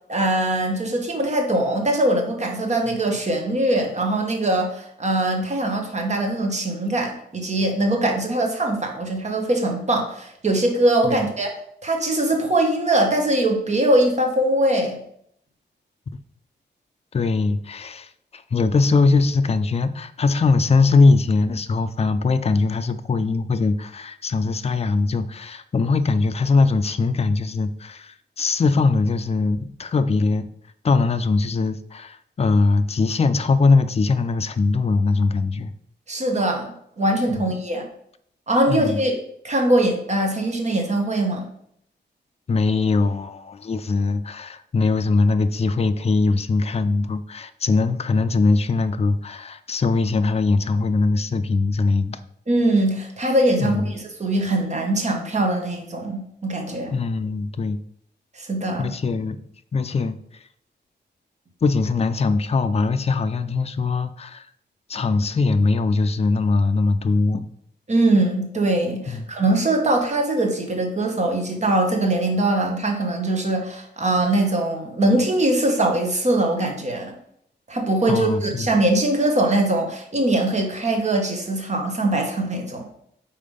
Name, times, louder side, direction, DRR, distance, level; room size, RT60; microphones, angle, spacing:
voice 1, 0.1-11.5 11.8-15.0 36.1-36.7 37.0-37.8 38.5-39.2 39.4-41.5 52.5-53.8 54.2-57.0 58.4-58.9 67.9-77.1 77.7-82.8, right 1 dB, 40° right, 2 dB, 1.1 m, -22 dB
voice 2, 17.1-30.5 30.8-35.7 37.4-37.5 38.7-39.0 42.5-52.2 53.6-53.9 56.9-57.8 58.8-59.4 59.7-60.4 61.6-64.5 64.9-67.5 69.1-69.3 78.1-78.7, left 3 dB, 35° left, 10 dB, 0.4 m, -21 dB
5.5 x 4.2 x 5.1 m, 0.69 s
wide cardioid pair, 165°, 19 cm